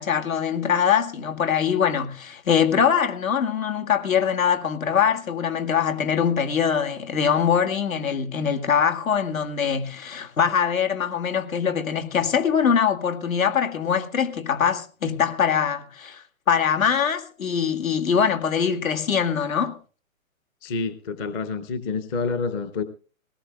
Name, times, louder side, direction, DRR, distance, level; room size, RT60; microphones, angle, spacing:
voice 1, 0.0-19.8, left 7 dB, 70° left, 2.2 m, -23 dB
voice 2, 20.6-22.8, left 4 dB, 20° left, 0.6 m, -28 dB
20.5 x 18.5 x 2.3 m
hypercardioid pair, 140°, 42 cm